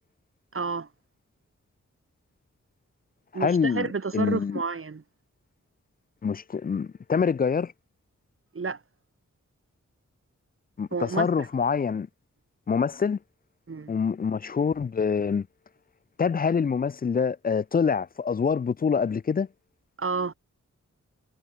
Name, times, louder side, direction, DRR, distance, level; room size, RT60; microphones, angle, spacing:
voice 1, 0.5-0.9 3.3-5.0 8.5-8.8 10.9-11.5 13.7-13.9 20.0-20.3, right 4 dB, 45° right, 1.5 m, -30 dB
voice 2, 3.3-4.6 6.2-7.7 10.8-12.1 12.7-13.2 13.9-15.5 16.2-19.5, left 6 dB, 30° left, 0.4 m, -25 dB
wide cardioid pair, 65°, 29 cm